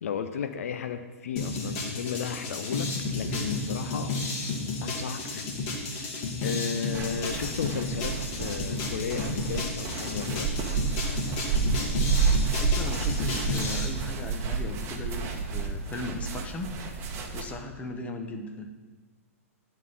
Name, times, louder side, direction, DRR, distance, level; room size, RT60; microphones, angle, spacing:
voice 1, 0.0-2.9 3.1-4.1 4.8-10.5, left 7 dB, 70° left, 9 dB, 0.6 m, -34 dB
sound 1, 1.4-13.9, left 3 dB, 45° left, 1.8 m, -32 dB
sound 2, 6.9-17.4, right 5 dB, 35° right, 1.1 m, -30 dB
voice 2, 12.6-16.7 17.3-18.7, left 2 dB, 15° left, 3 dB, 1.0 m, -37 dB
11.0 x 3.8 x 7.2 m, 1.3 s
hypercardioid pair, 120°, 8 cm